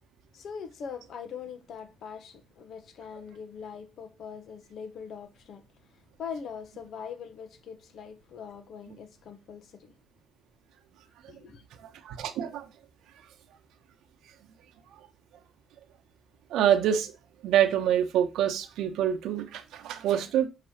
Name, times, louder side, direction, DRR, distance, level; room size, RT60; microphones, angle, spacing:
voice 1, 0.3-9.9 11.3-11.6, left 6 dB, 65° left, 0.8 m, -42 dB
voice 2, 11.8-12.7 16.5-17.1 17.4-20.5, right 10 dB, 85° right, 1.0 m, -26 dB
6.6 x 3.0 x 5.7 m
cardioid pair, 90°, 0 cm